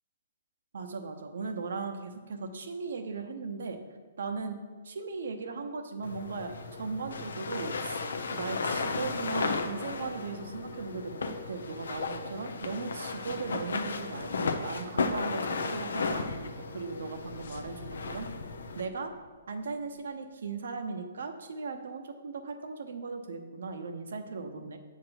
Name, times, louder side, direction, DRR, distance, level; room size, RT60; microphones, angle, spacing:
voice 1, 0.7-3.8 4.2-8.0 8.3-18.3 18.7-19.1 19.5-24.8, right 4 dB, 75° right, 6 dB, 0.9 m, -38 dB
sound 1, 6.0-18.8, left 4 dB, 85° left, 0.7 m, -35 dB
sound 2, 16.9-20.2, left 4 dB, 55° left, 0.6 m, -50 dB
7.5 x 4.7 x 5.8 m, 1.4 s
hypercardioid pair, 160°, 0 cm